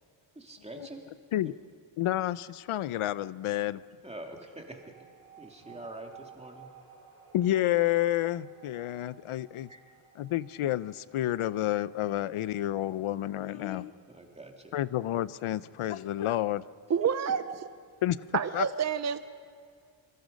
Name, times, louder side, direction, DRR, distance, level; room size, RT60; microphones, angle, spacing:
voice 1, 0.3-1.0 4.0-4.8 5.4-6.7 9.7-9.8 13.4-14.7 17.0-17.3, right 2 dB, 10° right, 1 dB, 2.4 m, -45 dB
voice 2, 2.0-3.8 7.3-9.7 10.2-13.9 14.7-16.6 18.0-18.2 18.5-18.7, left 13 dB, 80° left, 17 dB, 0.7 m, -29 dB
sound 1, 4.8-15.7, right 8 dB, 80° right, 5.7 m, -57 dB
voice 3, 16.9-17.4 18.3-19.2, right 7 dB, 35° right, 11 dB, 0.6 m, -28 dB
27.0 x 24.0 x 5.2 m, 2.1 s
wide cardioid pair, 135°, 50 cm